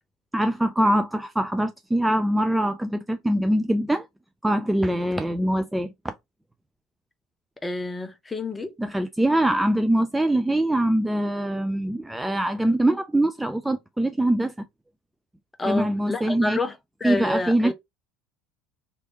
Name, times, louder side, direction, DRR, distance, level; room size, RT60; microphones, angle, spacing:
voice 1, 0.3-4.1 4.4-6.1 8.8-14.7 15.6-16.6 17.0-17.7, right 1 dB, 5° right, 0.3 m, -23 dB
voice 2, 7.6-8.7 15.6-16.7 17.0-17.7, left 2 dB, 15° left, 0.7 m, -28 dB
3.1 x 2.7 x 3.0 m
figure-of-eight pair, 65°, 0 cm